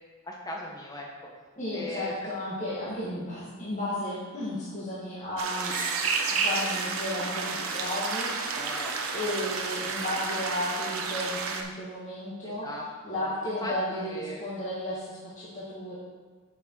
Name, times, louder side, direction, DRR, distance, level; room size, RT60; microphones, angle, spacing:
voice 1, 0.2-1.1 1.7-2.1 5.2-5.3 8.5-9.5 12.4-14.5, left 1 dB, 15° left, -2 dB, 1.2 m, -39 dB
voice 2, 1.6-5.7 6.4-8.3 9.1-12.7 13.0-16.0, left 1 dB, 35° left, -9 dB, 2.0 m, -33 dB
sound 1, 5.4-11.6, right 4 dB, 70° right, 0.9 m, -31 dB
Screech, 5.6-9.6, right 4 dB, 40° right, 1.0 m, -39 dB
6.8 x 6.5 x 4.7 m, 1.4 s
head